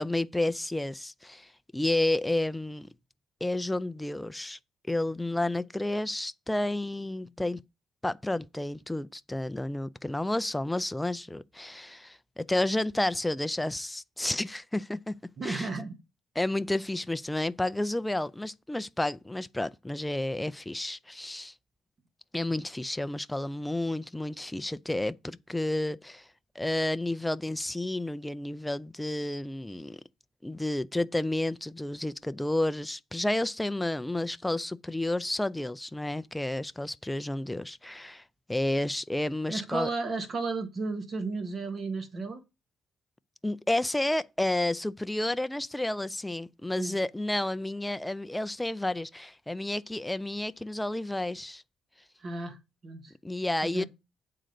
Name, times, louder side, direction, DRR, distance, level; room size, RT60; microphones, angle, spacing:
voice 1, 0.0-2.9 3.4-4.6 4.9-7.6 8.0-15.1 15.4-15.7 16.4-21.5 22.3-26.3 26.6-30.0 30.4-38.2 38.5-39.9 43.4-51.6 53.2-53.9, left 1 dB, 10° left, 0.4 m, -31 dB
voice 2, 15.4-16.0 39.5-42.4 46.8-47.0 52.2-52.6 52.8-53.1 53.6-53.9, right 3 dB, 45° right, 1.8 m, -33 dB
8.7 x 3.9 x 6.7 m
cardioid pair, 90°, 0 cm